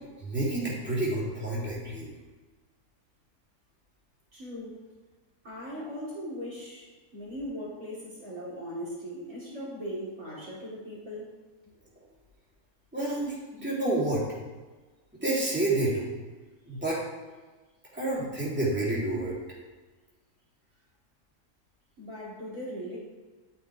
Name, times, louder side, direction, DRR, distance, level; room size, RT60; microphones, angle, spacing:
voice 1, 0.2-2.1 12.9-14.2 15.2-16.1 16.7-17.0 17.9-19.4, right 2 dB, 5° right, -7 dB, 3.3 m, -29 dB
voice 2, 4.3-4.8 5.4-11.3 22.0-23.0, equal, 60° right, -6 dB, 3.6 m, -39 dB
12.0 x 9.0 x 3.5 m, 1.3 s
omnidirectional pair, 1.6 m